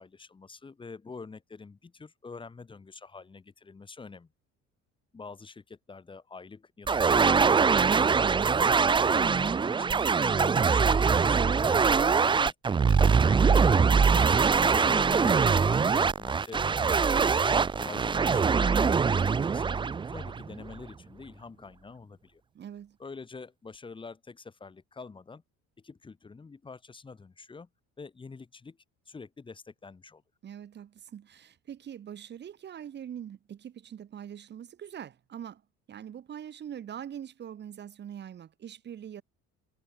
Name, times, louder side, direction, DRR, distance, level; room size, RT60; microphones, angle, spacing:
voice 1, 0.0-4.3 5.1-12.5 12.9-13.8 14.6-16.7 17.1-19.7 20.1-22.4 23.0-25.4 25.8-27.7 28.0-28.8 29.0-30.2, left 4 dB, 15° left, 6.8 m, -46 dB
sound 1, 6.9-20.7, right 5 dB, 15° right, 0.8 m, -23 dB
voice 2, 22.5-23.0 30.4-35.6 35.9-39.2, right 9 dB, 35° right, 6.5 m, -43 dB
cardioid pair, 175°, 30 cm